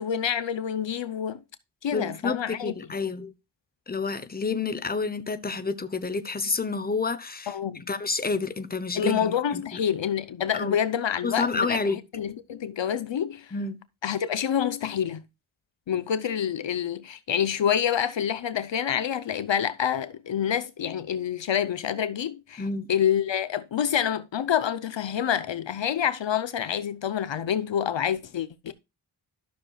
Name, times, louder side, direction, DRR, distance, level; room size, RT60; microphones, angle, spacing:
voice 1, 0.0-1.4 1.8-2.7 7.5-7.9 8.9-11.8 12.1-13.5 14.0-15.2 15.9-28.7, left 9 dB, 65° left, 0.7 m, -27 dB
voice 2, 1.9-3.3 3.9-9.8 10.5-10.8 11.2-12.0 13.5-13.8 22.6-22.9, left 4 dB, 20° left, 0.8 m, -29 dB
12.5 x 6.6 x 2.3 m
cardioid pair, 55°, 48 cm